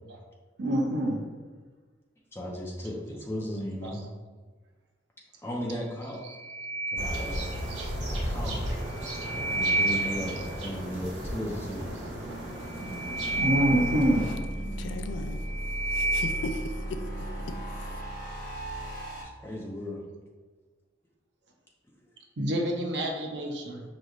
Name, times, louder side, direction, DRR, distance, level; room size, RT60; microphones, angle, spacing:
voice 1, 0.6-1.2 3.8-3.9 7.7-7.9 12.8-12.9 13.4-14.3 22.4-23.8, right 1 dB, 65° right, 1 dB, 0.6 m, -26 dB
voice 2, 2.3-4.0 5.4-6.2 6.9-7.5 8.1-8.6 9.2-11.9 19.2-20.0, equal, 15° left, -3 dB, 0.7 m, -36 dB
sound 1, 6.2-7.9 8.8-10.7 12.7-14.8 15.2-16.8, right 2 dB, 30° right, 1.2 m, -31 dB
sound 2, 7.0-14.3, equal, 80° right, 1.3 m, -35 dB
sound 3, 13.1-19.2, right 1 dB, 45° left, 1.1 m, -36 dB
voice 3, 14.7-18.0, left 2 dB, 75° left, 7 dB, 0.4 m, -39 dB
5.1 x 3.1 x 2.5 m, 1.4 s
head